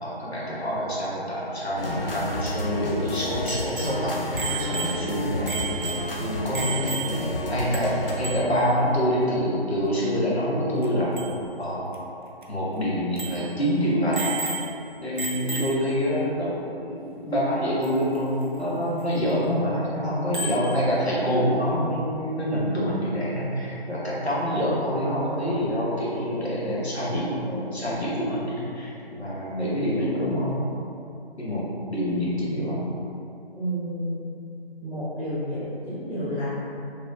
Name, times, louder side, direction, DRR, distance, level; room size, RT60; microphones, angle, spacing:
voice 1, 0.0-5.9 6.2-11.1 11.6-11.9 12.5-14.3 15.0-30.6 31.4-32.9, equal, 85° left, -7 dB, 1.1 m, -26 dB
sound 1, 1.8-8.1, left 1 dB, 60° left, 0.6 m, -30 dB
Bicycle bell, 3.5-7.4 7.7-7.8 8.1-8.6 10.8-10.9 11.2-11.4 11.9-12.0 12.4-12.5 13.2-13.5 14.1-14.9 15.2-16.0 17.8-17.9 20.3-20.7, right 4 dB, 55° right, 0.4 m, -33 dB
voice 2, 33.5-34.2 34.8-36.4, equal, 10° left, -20 dB, 0.7 m, -31 dB
3.0 x 3.0 x 2.6 m, 2.6 s
figure-of-eight pair, 150°, 31 cm